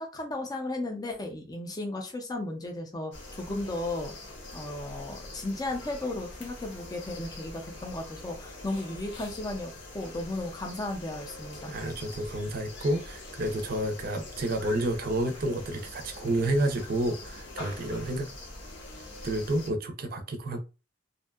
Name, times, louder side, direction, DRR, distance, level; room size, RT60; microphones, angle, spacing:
voice 1, 0.0-4.1 4.5-9.7 9.9-11.7, left 2 dB, 20° left, 0.5 m, -35 dB
sound 1, 3.1-19.7, left 2 dB, 65° left, 0.9 m, -44 dB
voice 2, 11.7-18.3 19.2-20.6, right 1 dB, 50° right, 0.5 m, -30 dB
2.6 x 2.2 x 2.3 m
head